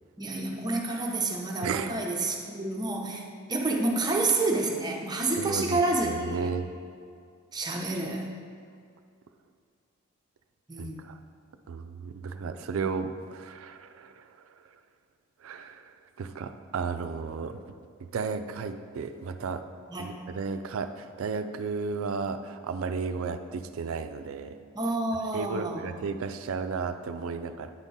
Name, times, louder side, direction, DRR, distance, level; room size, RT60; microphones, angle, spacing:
voice 1, 0.2-6.5 7.5-8.3 10.7-11.0 19.9-20.1 24.7-25.8, right 2 dB, 20° right, 0 dB, 0.7 m, -29 dB
voice 2, 1.6-1.9 5.4-6.7 10.8-11.2 11.7-14.2 15.4-15.9 16.2-17.6 18.1-19.6 20.0-24.5 25.3-27.7, right 5 dB, 70° right, 9 dB, 0.4 m, -33 dB
9.2 x 3.7 x 4.0 m, 2.2 s
head